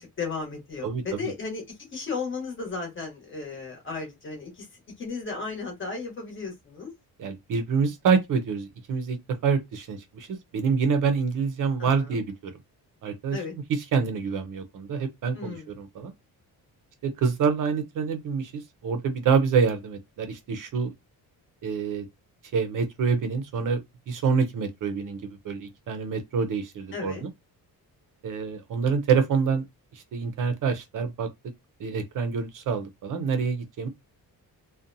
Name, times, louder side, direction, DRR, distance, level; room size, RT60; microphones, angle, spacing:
voice 1, 0.0-4.7 5.0-6.9 11.8-12.2 13.3-13.5 15.3-15.8 26.9-27.3, left 4 dB, 30° left, 1.0 m, -35 dB
voice 2, 0.8-1.3 7.2-9.2 9.4-12.5 13.0-13.4 13.7-16.1 17.0-20.9 21.6-22.1 22.5-27.3 28.2-29.6 29.9-31.3 31.8-33.9, right 5 dB, 55° right, 0.5 m, -26 dB
2.6 x 2.1 x 2.5 m
wide cardioid pair, 170°, 38 cm